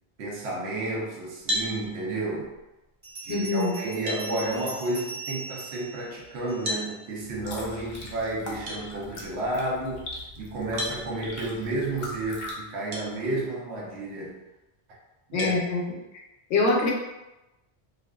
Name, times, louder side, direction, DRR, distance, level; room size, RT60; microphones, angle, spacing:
voice 1, 0.2-2.5 3.2-10.0 10.4-14.4 15.3-15.5, right 2 dB, 80° right, -3 dB, 0.9 m, -31 dB
sound 1, 1.5-1.7 3.4-3.5 4.1-4.3 6.6-6.9 8.7-8.8 10.8-11.0 12.9-13.1 13.7-13.8 15.4-15.6, equal, 55° right, 0.6 m, -30 dB
Bell, 3.0-6.9, right 3 dB, 35° right, 1.1 m, -40 dB
voice 2, 3.3-3.7 15.3-15.8 16.5-16.9, left 3 dB, 85° left, -1 dB, 0.9 m, -24 dB
sound 2, 7.2-12.5, left 2 dB, 55° left, 0.6 m, -41 dB
2.5 x 2.4 x 2.2 m, 0.99 s
omnidirectional pair, 1.1 m